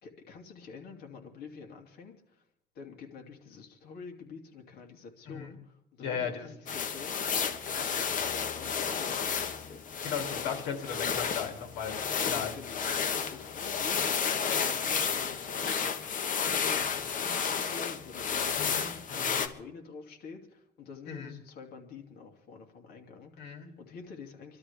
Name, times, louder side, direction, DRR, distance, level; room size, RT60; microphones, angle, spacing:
voice 1, 0.0-2.4 2.7-7.2 7.8-9.9 12.2-24.6, left 5 dB, 70° left, 2 dB, 2.8 m, -48 dB
voice 2, 6.0-6.5 10.0-11.9 12.2-12.5 18.6-19.4 21.1-21.4 23.4-23.7, left 7 dB, 85° left, 4 dB, 2.7 m, -36 dB
sound 1, 6.7-19.5, left 6 dB, 50° left, 1.3 m, -32 dB
27.5 x 12.5 x 3.5 m, 0.80 s
cardioid pair, 110°, 17 cm